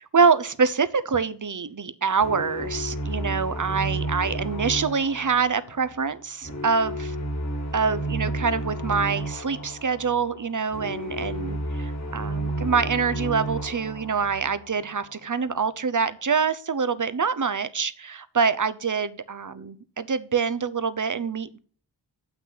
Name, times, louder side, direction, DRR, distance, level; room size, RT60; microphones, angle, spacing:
voice 1, 0.0-7.1 7.7-21.6, right 5 dB, 45° right, 14 dB, 0.8 m, -25 dB
sound 1, 2.2-15.3, right 1 dB, 40° left, 1.7 m, -32 dB
7.7 x 5.9 x 5.8 m, 0.44 s
wide cardioid pair, 50°, 42 cm